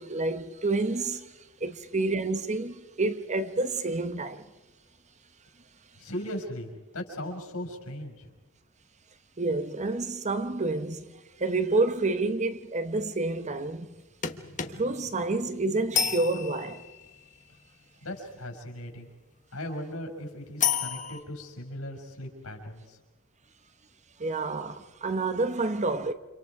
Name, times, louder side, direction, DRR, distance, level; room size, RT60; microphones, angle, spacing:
voice 1, 0.0-1.3 1.6-4.5 9.4-11.1 11.4-13.9 14.7-16.8 24.2-26.1, right 3 dB, 35° right, 1.0 m, -29 dB
voice 2, 6.0-8.3 18.0-19.1 19.5-23.0, left 1 dB, 80° left, 5.8 m, -38 dB
sound 1, 14.2-17.1 20.6-21.2, left 7 dB, 35° left, 1.2 m, -31 dB
30.0 x 27.0 x 4.8 m
head